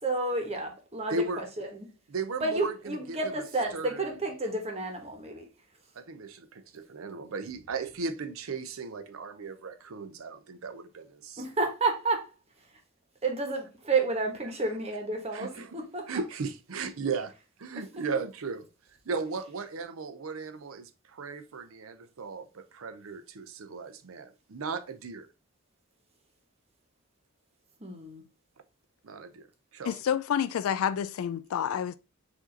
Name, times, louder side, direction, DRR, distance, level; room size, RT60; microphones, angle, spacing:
voice 1, 0.0-1.9 2.4-5.5 11.4-12.8 13.2-16.1 27.8-28.2, right 3 dB, 30° right, 1.1 m, -31 dB
voice 2, 1.1-1.4 2.1-2.7 3.1-3.2 3.7-4.0 5.9-11.4 15.3-15.8 16.1-17.3 17.6-18.7 19.0-25.3 29.0-29.5 29.7-30.0, right 4 dB, 75° right, 0.6 m, -36 dB
voice 3, 29.9-31.9, left 8 dB, 85° left, 0.3 m, -29 dB
5.0 x 2.7 x 3.8 m
head